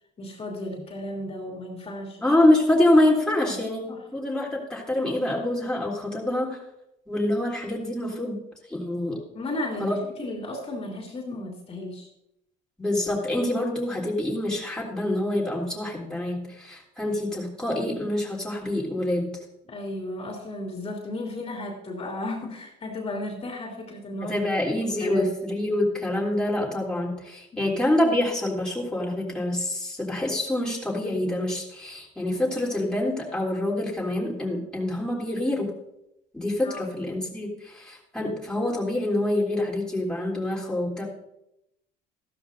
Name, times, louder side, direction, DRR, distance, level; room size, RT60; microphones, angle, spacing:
voice 1, 0.2-2.3 3.3-3.6 3.9-4.0 9.3-12.1 19.7-24.4 25.0-25.3 27.5-27.7 36.6-37.0, left 1 dB, 30° left, 0 dB, 2.9 m, -34 dB
voice 2, 2.2-6.6 7.1-8.4 8.7-9.2 9.8-10.0 12.8-19.3 24.2-35.7 36.3-41.0, left 1 dB, 5° left, -4 dB, 3.3 m, -26 dB
14.0 x 13.0 x 2.7 m, 0.83 s
cardioid pair, 110°, 19 cm